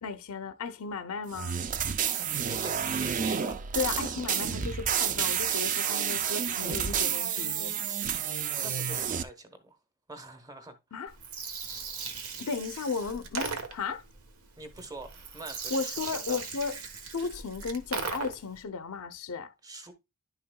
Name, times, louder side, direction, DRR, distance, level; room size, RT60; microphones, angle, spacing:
voice 1, 0.0-1.6 3.7-7.9 10.9-11.1 12.4-14.0 15.7-16.8 17.1-19.5, left 5 dB, 85° left, 0.6 m, -35 dB
sound 1, 1.3-9.2, right 8 dB, 35° right, 0.4 m, -30 dB
voice 2, 2.5-3.7 8.6-9.8 10.1-10.8 14.6-16.4 19.6-19.9, right 2 dB, 15° right, 0.9 m, -45 dB
Gurgling, 11.1-18.6, right 5 dB, 80° right, 1.2 m, -38 dB
10.5 x 5.7 x 2.2 m
head